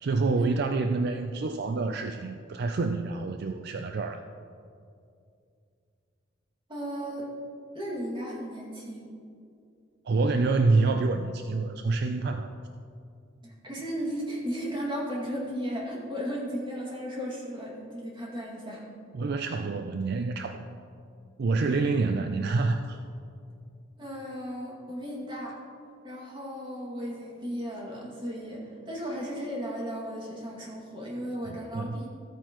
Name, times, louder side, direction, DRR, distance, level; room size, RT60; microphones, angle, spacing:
voice 1, 0.0-4.2 10.1-12.5 19.1-20.7 21.4-23.0 31.5-32.0, right 3 dB, 60° right, 6 dB, 0.4 m, -27 dB
voice 2, 6.7-7.3 7.7-9.1 13.4-18.9 21.6-21.8 24.0-25.6 26.0-32.1, equal, 25° right, -4 dB, 2.1 m, -35 dB
14.5 x 8.9 x 3.0 m, 2.4 s
head